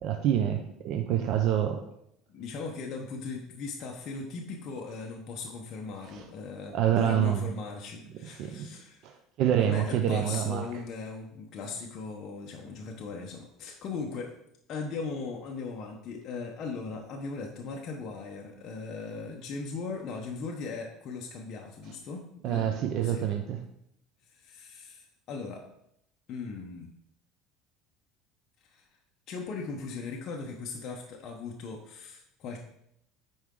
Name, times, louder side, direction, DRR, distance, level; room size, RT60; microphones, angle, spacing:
voice 1, 0.0-1.8 6.7-7.5 8.4-8.7 9.0-9.1 9.4-10.6 22.4-23.6, right 10 dB, 50° right, 5 dB, 0.7 m, -26 dB
voice 2, 2.3-9.0 9.6-14.3 14.7-23.3 24.3-25.7 26.3-26.9 28.6-28.9 29.3-32.6, left 4 dB, 40° left, 0 dB, 0.9 m, -38 dB
9.3 x 4.7 x 3.8 m, 0.76 s
cardioid pair, 155°, 0 cm